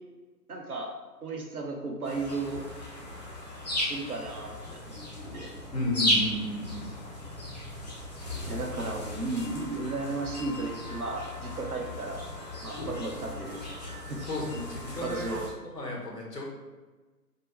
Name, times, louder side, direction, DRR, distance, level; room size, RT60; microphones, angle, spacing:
voice 1, 0.5-0.9 1.2-2.7 3.8-5.0 5.3-5.5 8.5-12.2 12.6-14.3 14.9-15.5, right 3 dB, 60° right, 1 dB, 0.9 m, -35 dB
sound 1, 2.0-15.5, left 1 dB, 25° left, 0.7 m, -35 dB
voice 2, 5.7-6.9 14.3-15.3 15.7-16.4, left 1 dB, 70° left, -1 dB, 1.4 m, -33 dB
5.2 x 2.2 x 4.2 m, 1.3 s
figure-of-eight pair, 140°, 50 cm